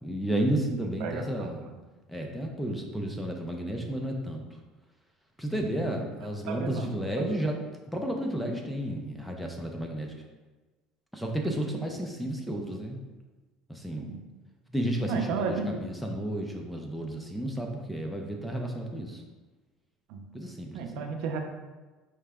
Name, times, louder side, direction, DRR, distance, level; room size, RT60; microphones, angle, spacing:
voice 1, 0.0-1.6 2.1-4.4 5.4-7.6 7.9-10.1 11.1-13.0 13.7-14.1 14.7-15.2 15.5-19.2 20.3-21.0, right 1 dB, 5° left, 1 dB, 0.4 m, -32 dB
voice 2, 0.8-1.8 5.5-5.9 6.5-7.4 11.4-11.6 14.0-14.2 15.1-15.7 20.1-20.2 20.7-21.4, right 5 dB, 65° right, 3 dB, 0.6 m, -34 dB
4.8 x 3.2 x 3.4 m, 1.2 s
cardioid pair, 170°, 0 cm